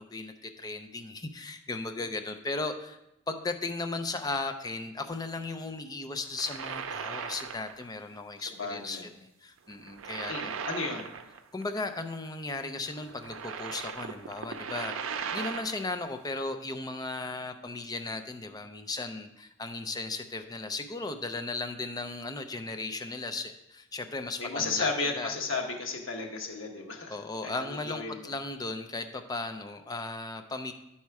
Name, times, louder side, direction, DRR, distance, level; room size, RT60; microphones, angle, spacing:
voice 1, 0.0-3.0 3.3-10.6 11.5-25.3 27.1-30.7, left 3 dB, 20° left, 7 dB, 0.5 m, -36 dB
sound 1, 6.2-7.9 8.2-8.4 9.7-11.6 11.9-12.0 12.9-15.9, right 6 dB, 85° right, 0.5 m, -38 dB
voice 2, 8.4-9.1 10.3-11.0 24.4-27.2 27.4-28.3, left 4 dB, 70° left, 1 dB, 1.3 m, -34 dB
10.5 x 4.2 x 4.7 m, 0.86 s
head